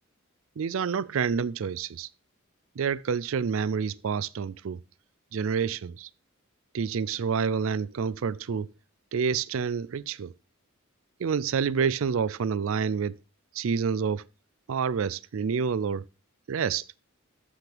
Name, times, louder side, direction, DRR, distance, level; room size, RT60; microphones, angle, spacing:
voice 1, 0.6-2.1 2.8-4.8 5.3-6.1 6.7-8.7 9.1-10.3 11.2-13.2 13.5-14.3 14.7-16.0 16.5-16.9, right 6 dB, 70° right, 0.4 m, -28 dB
13.5 x 5.9 x 3.4 m
head